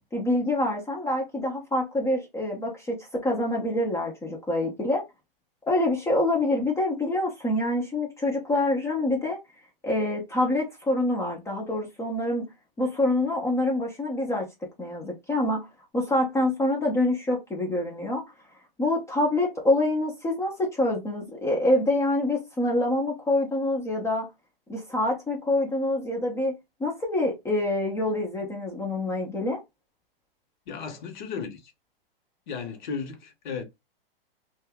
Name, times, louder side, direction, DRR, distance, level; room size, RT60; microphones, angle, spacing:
voice 1, 0.1-5.0 5.7-9.4 9.8-12.5 12.8-14.5 14.8-15.7 15.9-18.2 18.8-24.3 24.7-26.5 26.8-29.6, left 1 dB, 10° left, 0.5 m, -26 dB
voice 2, 30.7-31.7 32.5-33.6, left 6 dB, 55° left, 1.0 m, -35 dB
2.6 x 2.3 x 3.4 m
hypercardioid pair, 130°, 29 cm